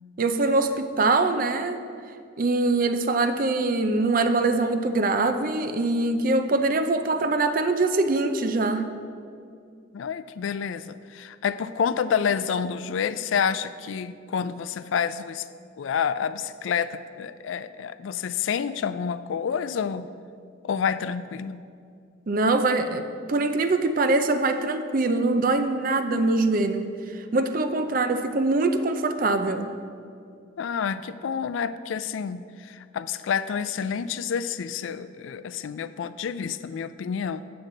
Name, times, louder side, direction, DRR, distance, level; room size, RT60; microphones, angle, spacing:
voice 1, 0.2-1.8 2.4-8.9 22.3-29.7, right 2 dB, 45° right, 8 dB, 0.5 m, -23 dB
voice 2, 9.9-15.4 15.8-20.1 20.6-21.6 30.6-37.4, left 7 dB, 80° left, 14 dB, 0.4 m, -28 dB
9.0 x 7.8 x 3.9 m, 2.3 s
head